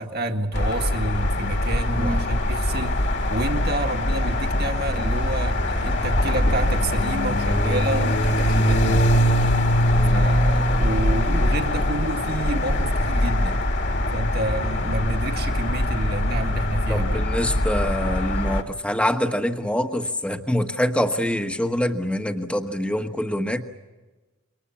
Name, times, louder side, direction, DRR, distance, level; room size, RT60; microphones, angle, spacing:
voice 1, 0.0-3.0 3.3-9.1 10.1-13.6 14.1-17.3, right 2 dB, 50° right, 5 dB, 1.9 m, -29 dB
sound 1, 0.5-18.6, left 1 dB, 55° left, 2.4 m, -22 dB
voice 2, 1.9-2.3 9.9-10.3 16.9-23.6, equal, 5° left, 5 dB, 1.2 m, -25 dB
28.5 x 24.0 x 7.3 m, 1.2 s
head